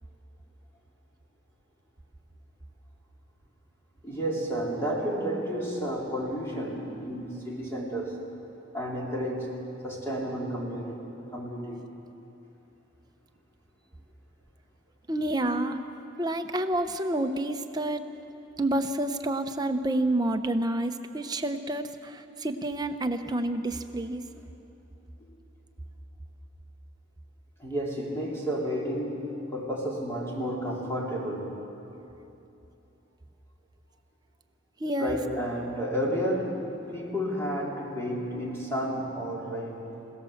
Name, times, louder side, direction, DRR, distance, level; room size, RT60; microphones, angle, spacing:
voice 1, 4.0-8.2 8.7-9.6 9.8-11.0 11.3-11.9 25.2-25.3 27.6-31.5 35.0-39.9, equal, 15° left, -4 dB, 3.5 m, -31 dB
voice 2, 15.1-15.8 16.2-18.1 18.6-24.2 34.8-35.2, right 1 dB, 20° right, 6 dB, 0.8 m, -29 dB
25.5 x 17.5 x 7.2 m, 2.9 s
head